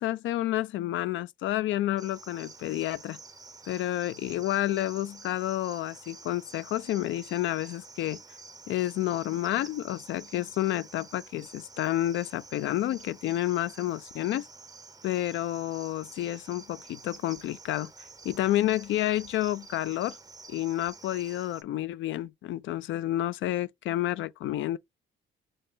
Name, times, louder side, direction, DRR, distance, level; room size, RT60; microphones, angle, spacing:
voice 1, 0.0-3.2 3.7-8.2 8.7-14.5 15.0-17.9 18.2-20.2 20.5-24.8, left 14 dB, 75° left, 0.4 m, -30 dB
Cricket, 2.0-21.6, right 4 dB, 20° right, 0.6 m, -49 dB
6.3 x 2.2 x 2.7 m
cardioid pair, 90°, 20 cm